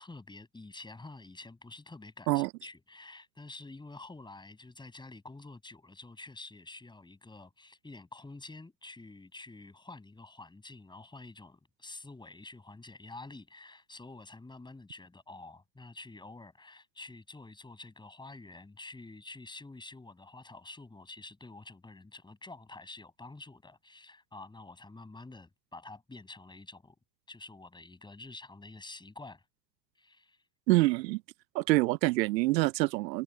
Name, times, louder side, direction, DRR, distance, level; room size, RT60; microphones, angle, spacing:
voice 1, 0.0-26.9 27.3-29.4 29.9-30.4, left 3 dB, 10° left, 6.8 m, -48 dB
voice 2, 30.7-31.2 31.5-33.2, right 20 dB, 80° right, 0.6 m, -26 dB
supercardioid pair, 120°, 50 cm